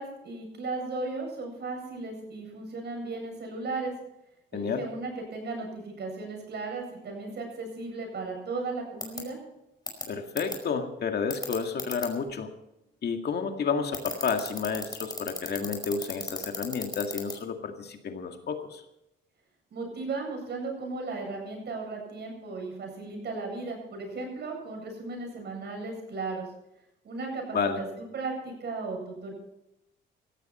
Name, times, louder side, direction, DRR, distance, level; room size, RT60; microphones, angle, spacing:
voice 1, 0.0-3.9 4.5-9.4 19.7-26.5 27.0-29.3, right 3 dB, 60° right, 2 dB, 7.9 m, -36 dB
voice 2, 4.5-4.8 10.1-12.5 13.0-18.8 27.5-27.8, left 5 dB, 55° left, 5 dB, 2.1 m, -31 dB
sound 1, 9.0-9.2 9.9-10.0 10.4-10.5 11.3-12.1 13.9-17.3, left 3 dB, 20° left, 5.1 m, -34 dB
17.5 x 15.5 x 4.4 m, 0.85 s
cardioid pair, 90°, 20 cm